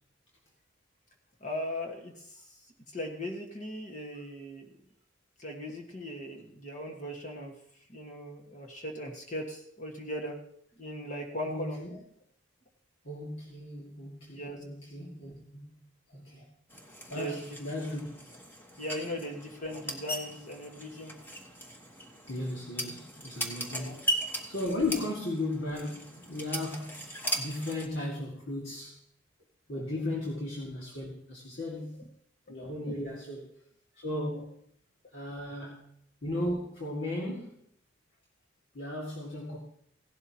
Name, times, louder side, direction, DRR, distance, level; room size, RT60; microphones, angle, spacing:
voice 1, 1.4-2.6 2.9-4.7 5.4-7.6 7.9-10.4 10.8-12.0 14.3-14.6 17.1-17.4 18.8-21.2 23.7-23.9 29.7-29.8 32.0-32.1 32.5-32.9 35.5-35.6, equal, 40° left, 1 dB, 1.5 m, -39 dB
voice 2, 11.5-12.0 13.0-15.8 16.1-16.5 17.1-18.1 22.3-24.1 24.5-27.0 27.4-29.0 29.7-32.1 32.5-33.5 34.0-34.6 35.1-35.9 36.2-37.5 38.7-39.6, left 1 dB, 65° left, -3 dB, 2.0 m, -36 dB
sound 1, 16.7-27.9, right 1 dB, 10° left, 1.3 m, -38 dB
16.5 x 12.0 x 2.9 m, 0.66 s
head